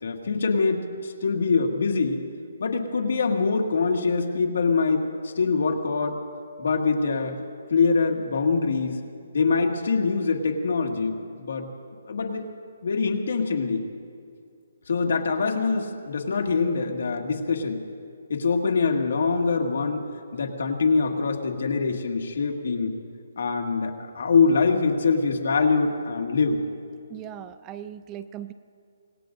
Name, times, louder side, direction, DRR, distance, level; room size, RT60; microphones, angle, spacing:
voice 1, 0.0-2.2 2.6-6.2 6.6-7.4 7.7-9.0 9.3-11.7 12.1-12.5 12.8-13.9 14.9-17.8 18.3-22.9 23.4-26.6, left 4 dB, 65° left, 2 dB, 2.0 m, -24 dB
voice 2, 27.1-28.5, right 10 dB, 15° right, 11 dB, 0.4 m, -38 dB
25.5 x 19.5 x 2.6 m, 2.4 s
hypercardioid pair, 170°, 0 cm